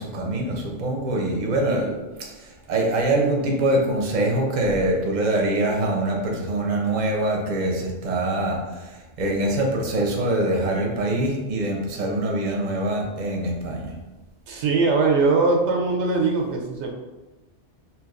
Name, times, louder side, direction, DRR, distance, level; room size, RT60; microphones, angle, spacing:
voice 1, 0.0-13.9, right 1 dB, 45° right, 0 dB, 0.7 m, -24 dB
voice 2, 14.5-16.9, right 3 dB, 75° right, 1 dB, 0.9 m, -21 dB
4.5 x 2.8 x 2.4 m, 1.1 s
omnidirectional pair, 1.2 m